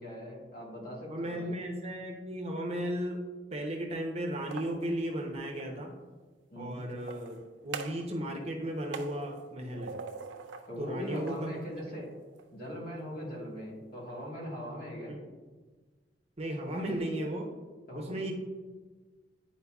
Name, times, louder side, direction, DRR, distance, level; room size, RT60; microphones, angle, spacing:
voice 1, 0.0-1.5 6.5-6.8 10.7-12.1 12.5-15.1 17.9-18.2, equal, 50° left, -3 dB, 1.6 m, -40 dB
voice 2, 1.1-3.2 3.5-5.9 6.6-9.9 10.8-11.5 15.1-15.2 16.4-17.5 17.9-18.3, right 1 dB, 35° right, 1 dB, 0.8 m, -35 dB
sound 1, 4.3-5.8 6.9-8.1 8.4-10.7 11.1-12.5, right 5 dB, 85° right, 0.4 m, -45 dB
9.3 x 4.4 x 2.3 m, 1.4 s
head